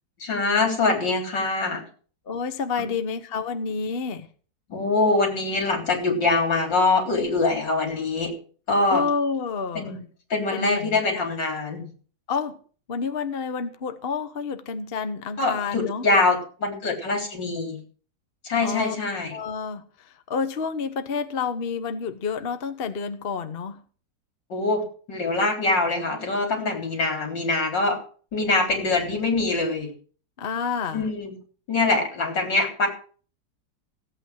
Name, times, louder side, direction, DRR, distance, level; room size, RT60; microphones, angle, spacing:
voice 1, 0.2-1.8 2.8-2.9 4.7-8.3 8.7-9.0 9.7-10.0 10.3-11.9 15.4-17.8 18.4-19.3 24.5-24.8 25.1-28.0 28.3-29.9 30.9-31.4 31.7-32.9, left 3 dB, 80° left, 4.5 m, -24 dB
voice 2, 2.3-4.3 8.9-9.9 10.5-11.0 12.3-12.6 12.9-16.0 18.6-18.9 19.3-23.8 30.4-31.0, left 5 dB, 40° left, 1.1 m, -29 dB
16.0 x 8.6 x 6.3 m
omnidirectional pair, 1.9 m